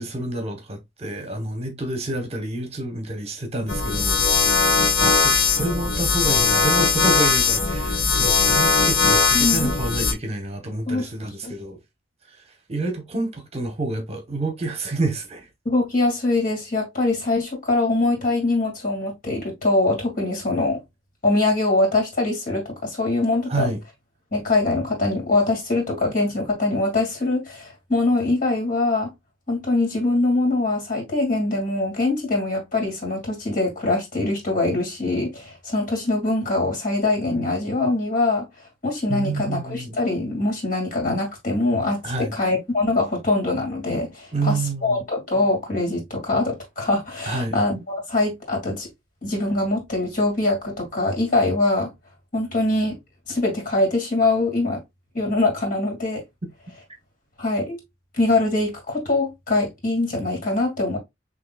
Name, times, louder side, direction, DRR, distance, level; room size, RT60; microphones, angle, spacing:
voice 1, 0.0-4.6 5.0-11.8 12.3-12.4 12.7-15.5 23.5-23.8 39.1-40.0 42.0-42.3 44.3-45.0 47.3-47.6, right 2 dB, 35° right, 1.0 m, -28 dB
sound 1, 3.7-10.1, left 4 dB, 65° left, 1.1 m, -19 dB
voice 2, 9.3-9.7 10.9-11.1 11.4-11.5 15.6-20.8 21.2-23.7 24.3-29.1 29.5-38.5 38.8-44.6 44.8-48.9 49.2-51.9 52.3-53.0 53.3-54.8 55.1-56.2 57.4-57.8 58.2-61.0, left 2 dB, 45° left, 2.2 m, -23 dB
6.6 x 2.9 x 2.3 m
head